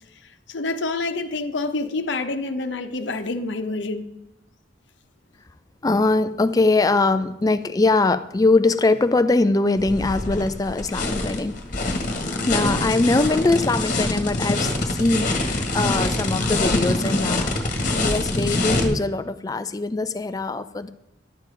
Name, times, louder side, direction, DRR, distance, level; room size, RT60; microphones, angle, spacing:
voice 1, 0.5-4.1, left 3 dB, 70° left, 0.9 m, -27 dB
voice 2, 5.8-11.6 12.5-20.9, left 2 dB, 20° left, 0.4 m, -22 dB
sound 1, 9.8-18.9, left 2 dB, 40° left, 1.7 m, -24 dB
11.5 x 7.5 x 5.0 m
head